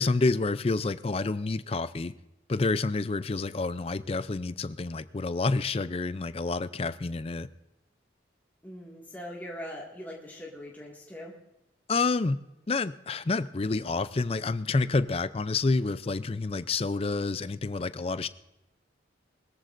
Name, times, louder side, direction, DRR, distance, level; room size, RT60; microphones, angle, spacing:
voice 1, 0.0-2.1 2.5-7.5 11.9-12.4 12.7-18.3, left 3 dB, 30° left, 15 dB, 0.4 m, -28 dB
voice 2, 8.6-11.3, equal, 10° left, -4 dB, 2.0 m, -41 dB
21.5 x 14.0 x 2.6 m, 0.92 s
head